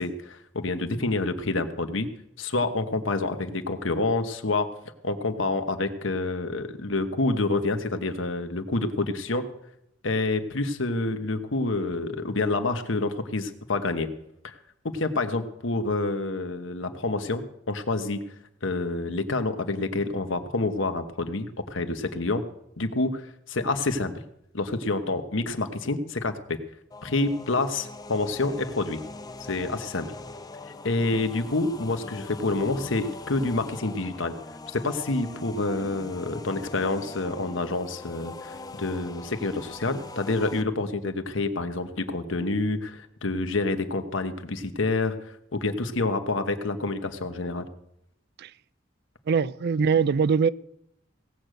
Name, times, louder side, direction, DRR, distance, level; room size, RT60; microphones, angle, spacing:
voice 1, 0.0-2.1 2.4-4.7 5.0-9.5 10.0-14.1 14.4-14.6 14.8-18.2 18.6-22.4 22.8-24.1 24.5-26.6 27.0-29.0 29.4-30.1 30.8-34.3 34.7-47.7, left 2 dB, 75° left, 8 dB, 1.2 m, -28 dB
sound 1, 26.9-40.6, left 3 dB, 20° left, 0.6 m, -41 dB
voice 2, 49.3-50.5, right 6 dB, 55° right, 20 dB, 0.4 m, -22 dB
17.5 x 6.6 x 7.7 m, 0.78 s
head